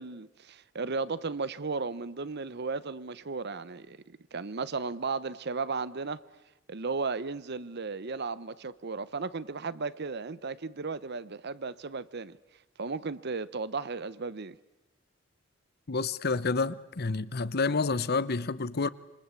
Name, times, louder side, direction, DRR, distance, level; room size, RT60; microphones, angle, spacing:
voice 1, 0.0-6.2 6.7-12.4 12.8-14.6, right 4 dB, 55° right, 0.9 m, -35 dB
voice 2, 15.9-18.9, left 4 dB, 55° left, 0.9 m, -29 dB
27.0 x 25.0 x 8.4 m
head